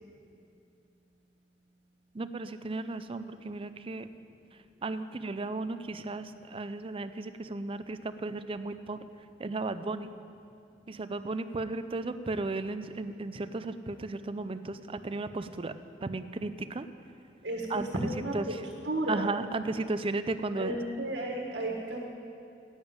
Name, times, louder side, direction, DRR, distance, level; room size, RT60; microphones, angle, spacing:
voice 1, 2.1-4.1 4.8-9.0 9.4-10.1 10.9-15.7 16.0-16.9 17.7-18.1 18.3-18.6 19.1-20.8, right 3 dB, 30° right, 11 dB, 0.5 m, -35 dB
voice 2, 17.4-18.3 18.8-19.3 20.5-22.1, right 1 dB, 75° right, 0 dB, 1.6 m, -33 dB
10.5 x 8.9 x 8.9 m, 2.5 s
head